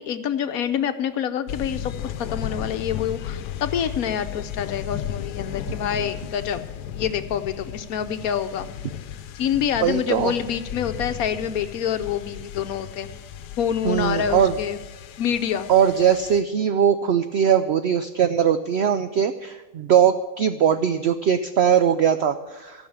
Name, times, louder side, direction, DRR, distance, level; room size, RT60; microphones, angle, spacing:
voice 1, 0.0-6.6 6.9-8.7 9.4-13.1 13.6-14.8 15.2-15.7, left 8 dB, 70° left, 10 dB, 1.1 m, -26 dB
sound 1, 1.5-16.4, left 10 dB, 85° left, 1.3 m, -35 dB
voice 2, 9.8-10.3 13.8-14.5 15.7-22.9, right 8 dB, 85° right, 10 dB, 0.5 m, -20 dB
14.5 x 6.3 x 8.9 m, 1.1 s
omnidirectional pair, 1.7 m